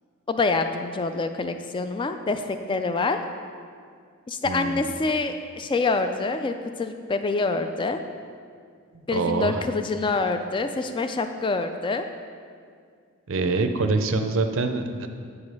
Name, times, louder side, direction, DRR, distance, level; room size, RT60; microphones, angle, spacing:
voice 1, 0.3-3.2 4.3-6.5 6.8-8.0 9.1-12.0, left 3 dB, 20° left, 8 dB, 0.3 m, -26 dB
voice 2, 4.4-4.9 9.1-9.6 13.3-15.1, right 3 dB, 60° right, 7 dB, 0.5 m, -25 dB
8.3 x 4.9 x 5.3 m, 2.2 s
head